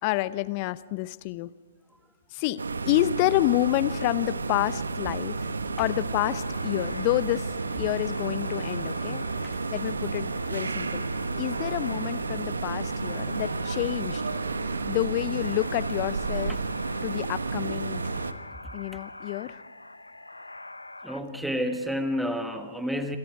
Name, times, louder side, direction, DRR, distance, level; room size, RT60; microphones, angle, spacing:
voice 1, 0.0-1.5 2.3-7.5 7.8-9.2 9.7-11.0 11.4-14.2 14.9-16.6 17.0-18.0 18.7-19.6, left 17 dB, 35° left, 17 dB, 0.8 m, -28 dB
sound 1, 2.6-18.3, right 4 dB, 75° right, 1.3 m, -31 dB
sound 2, 6.2-21.2, left 2 dB, 85° left, 1.1 m, -44 dB
voice 2, 21.0-23.2, equal, ahead, 6 dB, 1.6 m, -30 dB
27.5 x 26.0 x 4.8 m, 1.4 s
figure-of-eight pair, 120°, 0 cm